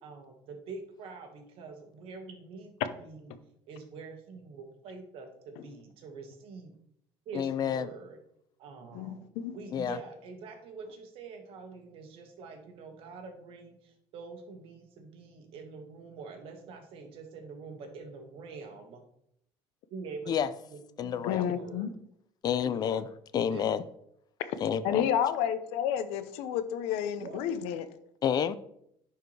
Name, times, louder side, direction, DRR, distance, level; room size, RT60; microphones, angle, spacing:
voice 1, 0.0-3.3 3.7-6.7 7.2-8.2 8.6-9.2 9.5-13.7 14.1-19.0 19.9-20.3 20.7-21.9 22.6-22.8 23.5-23.6 27.2-27.4, right 4 dB, 65° right, 4 dB, 1.6 m, -45 dB
voice 2, 7.3-7.9 9.7-10.0 20.3-20.5 21.0-21.5 22.4-23.8 24.6-25.1 28.2-28.6, left 8 dB, 40° left, 15 dB, 0.4 m, -29 dB
voice 3, 8.9-9.5 21.2-21.9 24.8-27.8, left 9 dB, 90° left, 12 dB, 0.7 m, -30 dB
10.0 x 4.7 x 3.3 m, 0.72 s
cardioid pair, 130°, 10 cm